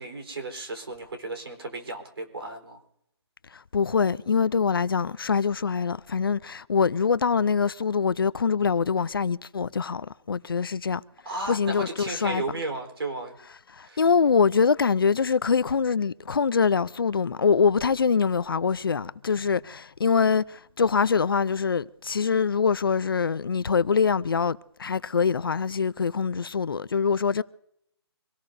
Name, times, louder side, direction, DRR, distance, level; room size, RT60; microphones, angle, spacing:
voice 1, 0.0-2.8 11.2-13.4 13.8-14.1, right 2 dB, 60° right, 4.0 m, -34 dB
voice 2, 3.5-11.0 11.5-12.4 13.7-27.4, left 5 dB, 55° left, 0.5 m, -24 dB
25.5 x 17.5 x 2.7 m
hypercardioid pair, 170°, 14 cm